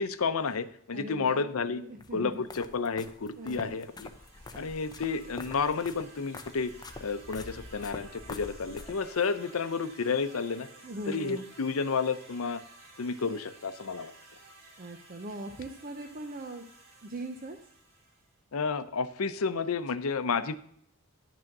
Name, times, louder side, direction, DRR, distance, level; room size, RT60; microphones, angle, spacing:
voice 1, 0.0-1.8 2.1-4.1 4.5-6.7 7.0-10.7 11.1-12.6 13.0-14.1 18.5-20.6, left 5 dB, 80° left, 12 dB, 0.7 m, -31 dB
voice 2, 0.9-1.4 1.7-2.3 3.4-3.8 10.8-11.5 14.8-16.6 17.0-17.6, right 1 dB, 45° right, 6 dB, 0.7 m, -40 dB
sound 1, 2.0-9.3, left 2 dB, 20° left, 0.7 m, -46 dB
sound 2, 3.3-18.4, right 2 dB, 65° right, 3.2 m, -54 dB
10.5 x 6.2 x 5.9 m, 0.67 s
head